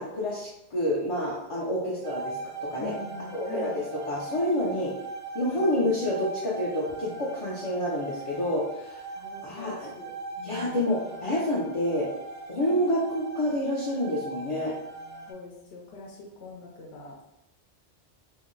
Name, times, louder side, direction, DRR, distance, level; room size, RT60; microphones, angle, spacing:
voice 1, 0.0-2.9 3.3-4.9 5.3-9.0 9.4-9.9 10.4-12.1 12.5-14.7, left 1 dB, 45° left, -6 dB, 0.4 m, -28 dB
sound 1, 2.0-15.3, right 3 dB, 50° right, 0.6 m, -40 dB
voice 2, 2.8-3.8 9.2-10.9 12.6-12.8 15.3-17.3, left 3 dB, 70° left, -2 dB, 0.8 m, -43 dB
2.6 x 2.0 x 3.7 m, 0.86 s
omnidirectional pair, 1.2 m